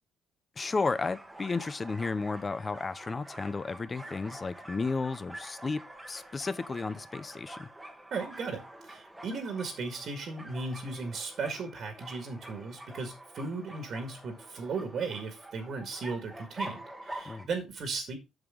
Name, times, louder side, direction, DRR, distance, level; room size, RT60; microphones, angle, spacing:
voice 1, 0.6-5.8 6.1-7.7 17.3-17.5, left 4 dB, 20° left, 0.5 m, -33 dB
sound 1, 0.6-17.4, right 1 dB, 5° right, 1.3 m, -46 dB
voice 2, 8.1-18.2, right 4 dB, 45° right, 1.8 m, -36 dB
7.9 x 7.1 x 3.6 m
cardioid pair, 165°, 0 cm